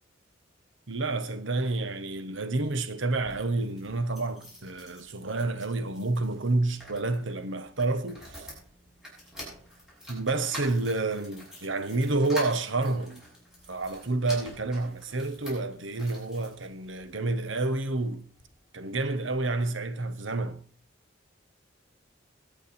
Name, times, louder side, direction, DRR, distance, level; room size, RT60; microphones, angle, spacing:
voice 1, 0.9-8.5 10.1-13.2 13.7-18.3 18.7-20.6, right 2 dB, 75° right, 1.2 m, -29 dB
sound 1, 3.1-17.1 17.7-18.5 18.9-19.0 19.2-19.3, equal, 5° right, 7.1 m, -47 dB
22.5 x 9.0 x 4.3 m
head